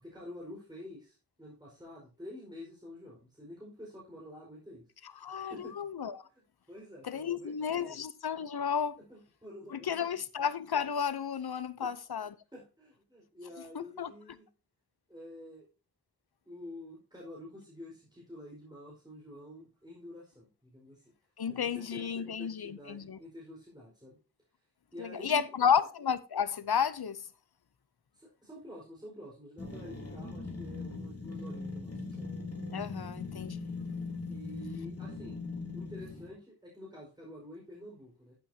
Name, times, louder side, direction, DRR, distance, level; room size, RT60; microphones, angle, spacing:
voice 1, 0.0-5.7 6.2-8.0 9.0-10.2 11.8-11.9 12.2-14.5 15.1-15.7 16.4-21.1 21.4-24.2 24.9-25.7 28.1-32.3 34.3-35.4 35.7-38.4, left 1 dB, 10° right, 4.7 m, -49 dB
voice 2, 5.2-6.1 7.1-9.0 9.7-12.3 13.8-14.1 21.4-23.2 25.0-27.2 32.7-33.7, left 7 dB, 90° left, 0.8 m, -32 dB
sound 1, 29.6-36.4, left 3 dB, 40° left, 3.2 m, -40 dB
12.0 x 8.5 x 2.8 m
wide cardioid pair, 65°, 37 cm